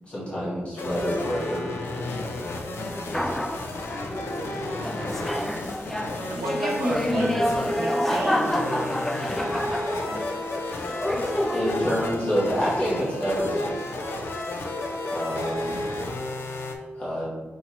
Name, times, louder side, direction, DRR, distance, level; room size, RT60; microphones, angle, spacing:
voice 1, 0.1-1.7 11.5-13.8 15.1-15.8 17.0-17.3, equal, 30° left, -8 dB, 1.0 m, -27 dB
sound 1, 0.8-16.8, left 2 dB, 85° left, 0.5 m, -32 dB
voice 2, 2.9-3.3 3.9-5.4 6.1-6.6, right 1 dB, 10° right, -4 dB, 1.0 m, -43 dB
sound 2, 3.1-3.6 4.5-10.5 10.8-11.8, left 1 dB, 5° left, 0.3 m, -28 dB
voice 3, 6.1-7.3 7.7-9.0, right 3 dB, 85° right, 1 dB, 0.6 m, -33 dB
5.7 x 2.8 x 2.9 m, 1.4 s
wide cardioid pair, 165°, 4 cm